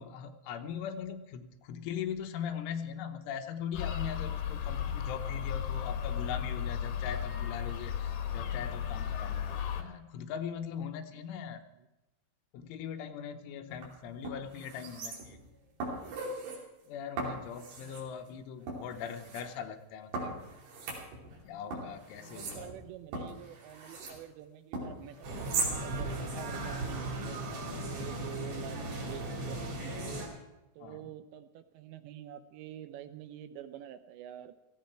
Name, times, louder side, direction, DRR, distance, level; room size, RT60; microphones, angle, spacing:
voice 1, 0.0-11.6 12.5-15.4 16.9-20.4 21.2-22.7 30.8-31.0, left 8 dB, 80° left, 7 dB, 3.4 m, -40 dB
sound 1, 3.7-9.8, left 8 dB, 65° left, 2.6 m, -35 dB
sound 2, 13.7-13.8 14.2-15.5 15.8-16.6 17.2-18.1 18.7-19.4 20.1-21.4 21.7-24.2 24.7-25.8 26.1-26.2, right 3 dB, 60° right, 5.0 m, -38 dB
voice 2, 22.3-30.2 30.8-34.5, right 11 dB, 80° right, 10 dB, 2.8 m, -47 dB
sound 3, 25.2-30.3, right 1 dB, 40° right, 3.9 m, -37 dB
17.5 x 15.0 x 4.6 m, 1.0 s
omnidirectional pair, 5.6 m